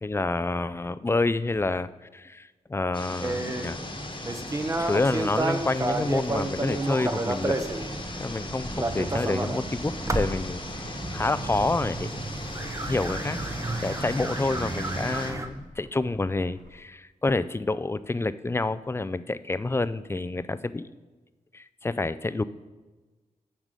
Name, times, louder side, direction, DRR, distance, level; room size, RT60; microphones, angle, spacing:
voice 1, 0.0-3.8 4.8-7.6 8.2-10.8 11.1-12.1 12.9-13.4 13.8-20.9 21.5-22.4, left 2 dB, 20° left, 15 dB, 0.4 m, -28 dB
sound 1, 2.9-15.3, left 2 dB, 35° left, 1.2 m, -39 dB
sound 2, 3.2-15.5, right 2 dB, 25° right, 0.7 m, -31 dB
sound 3, 9.4-16.8, equal, 70° right, 1.6 m, -52 dB
7.3 x 4.9 x 6.7 m, 1.2 s
cardioid pair, 55°, 14 cm